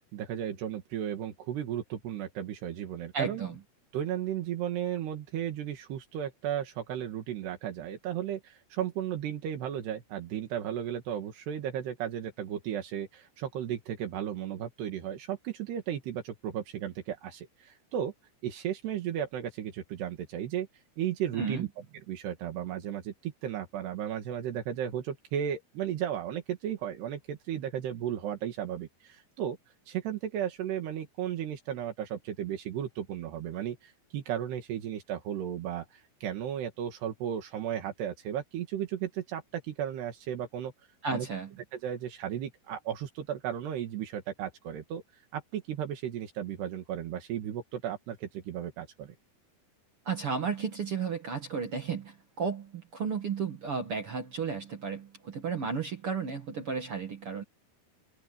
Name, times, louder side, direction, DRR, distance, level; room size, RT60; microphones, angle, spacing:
voice 1, 0.0-3.4 3.9-18.1 18.4-20.7 21.0-21.7 21.9-29.6 29.9-40.7 41.1-41.3 41.7-49.2, right 10 dB, 80° right, 4.1 m, -35 dB
voice 2, 3.1-3.5 21.4-21.7 41.0-41.5 50.1-57.4, right 5 dB, 50° right, 1.8 m, -33 dB
open air
omnidirectional pair, 4.7 m